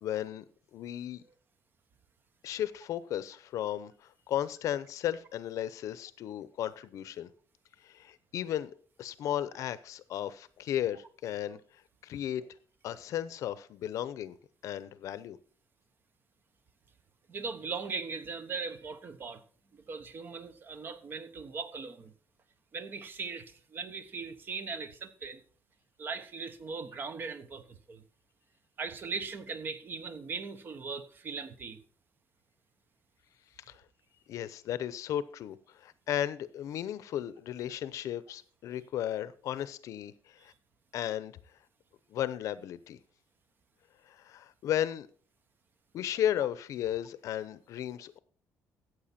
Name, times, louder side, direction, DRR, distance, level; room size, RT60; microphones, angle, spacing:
voice 1, 0.0-0.4 0.7-1.2 2.4-7.3 7.8-8.7 9.0-11.6 12.0-12.5 12.8-14.3 14.6-15.4 33.7-33.8 34.3-35.6 35.8-40.5 40.9-41.3 42.1-43.0 44.1-45.1 45.9-48.2, left 11 dB, 60° left, 0.8 m, -35 dB
voice 2, 17.3-19.4 19.7-22.1 22.7-25.4 26.0-28.0 28.8-31.8, right 5 dB, 35° right, 1.1 m, -39 dB
14.0 x 8.2 x 4.3 m
cardioid pair, 165°, 6 cm